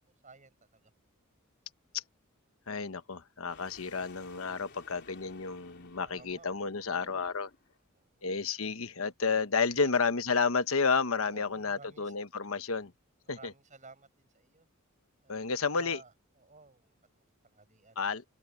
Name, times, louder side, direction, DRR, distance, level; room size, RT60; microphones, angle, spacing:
voice 1, 0.2-0.9 6.0-6.5 6.8-7.2 7.9-8.3 9.8-10.0 11.2-12.2 13.2-14.7 15.2-15.3 15.7-18.2, right 3 dB, 35° right, 7.1 m, -55 dB
voice 2, 2.7-7.5 8.2-12.9 13.3-13.5 15.3-16.0 18.0-18.2, left 5 dB, 85° left, 1.2 m, -31 dB
sound 1, 3.5-7.8, left 4 dB, 55° left, 3.6 m, -57 dB
open air
head